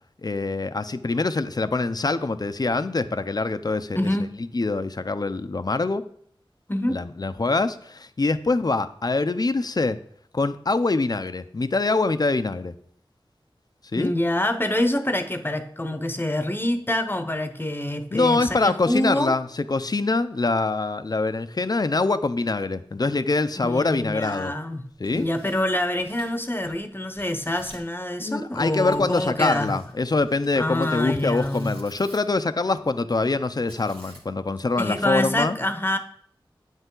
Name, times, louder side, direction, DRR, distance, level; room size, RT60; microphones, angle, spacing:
voice 1, 0.2-4.0 4.5-6.0 6.9-10.0 10.3-12.7 13.9-14.1 18.1-24.5 25.0-25.3 28.2-35.6, left 3 dB, 45° left, 11 dB, 0.6 m, -24 dB
voice 2, 3.9-4.4 6.7-7.0 14.0-19.3 23.6-24.8 25.1-29.7 30.5-31.8 34.8-36.0, left 1 dB, 25° left, 9 dB, 0.9 m, -26 dB
Tearing, 24.9-26.9 27.1-27.9 28.9-32.4 33.7-34.5, right 1 dB, 90° right, 2.4 m, -51 dB
9.0 x 8.1 x 3.8 m, 0.63 s
wide cardioid pair, 65°, 9 cm